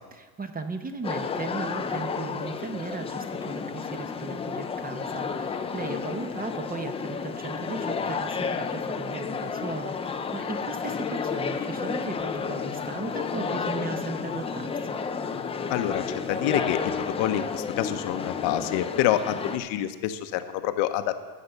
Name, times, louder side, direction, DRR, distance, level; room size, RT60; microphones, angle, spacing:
voice 1, 0.1-14.7, right 4 dB, 20° right, 7 dB, 0.8 m, -37 dB
sound 1, 1.0-19.6, left 5 dB, 15° left, 0.3 m, -31 dB
voice 2, 15.7-21.1, left 12 dB, 70° left, 9 dB, 1.0 m, -27 dB
14.0 x 5.9 x 6.8 m, 1.4 s
cardioid pair, 125°, 46 cm